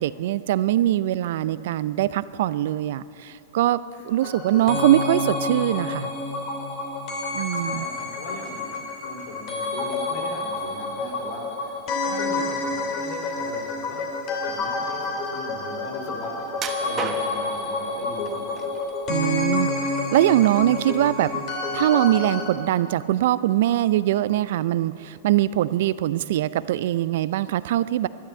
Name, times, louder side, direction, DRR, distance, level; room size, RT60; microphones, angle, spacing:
voice 1, 0.0-3.8 4.0-6.1 7.3-7.9 19.1-19.7 20.1-21.3 21.7-28.1, right 13 dB, 65° right, 17 dB, 0.4 m, -22 dB
sound 1, 4.2-22.5, left 2 dB, 40° left, 2.8 m, -29 dB
voice 2, 7.5-8.7 9.0-14.1 14.4-16.5 16.8-18.7, left 2 dB, 65° left, 1 dB, 3.9 m, -39 dB
sound 2, 16.5-17.6 18.3-18.9 19.3-20.2 20.6-20.8 21.3-21.4, right 6 dB, 30° right, 1.3 m, -34 dB
12.0 x 12.0 x 8.5 m, 2.8 s
hypercardioid pair, 110°, 0 cm